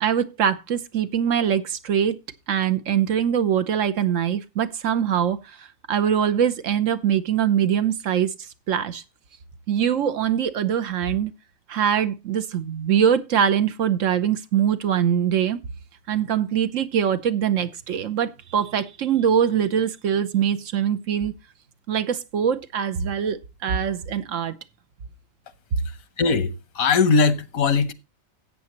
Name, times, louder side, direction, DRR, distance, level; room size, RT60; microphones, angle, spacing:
voice 1, 0.0-2.2 2.5-8.3 8.7-9.0 9.7-11.3 11.7-15.6 16.1-21.3 21.9-24.6, right 8 dB, 70° right, 1.2 m, -23 dB
voice 2, 26.2-27.9, left 4 dB, 90° left, 1.4 m, -20 dB
13.5 x 8.5 x 3.0 m
omnidirectional pair, 1.4 m